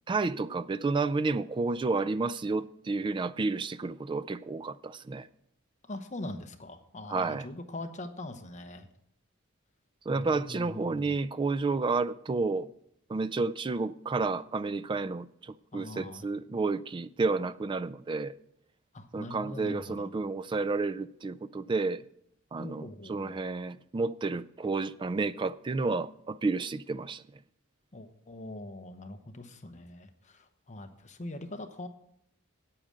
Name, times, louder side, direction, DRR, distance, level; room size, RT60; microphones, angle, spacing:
voice 1, 0.1-5.3 7.1-7.4 10.1-12.7 13.1-15.3 15.7-18.3 19.1-22.0 22.5-27.2, right 3 dB, 25° right, 0.3 m, -31 dB
voice 2, 5.9-8.9 10.1-11.1 15.7-16.3 18.9-20.1 22.6-23.4 27.9-31.9, left 1 dB, 35° left, 1.0 m, -42 dB
8.8 x 8.6 x 6.5 m
head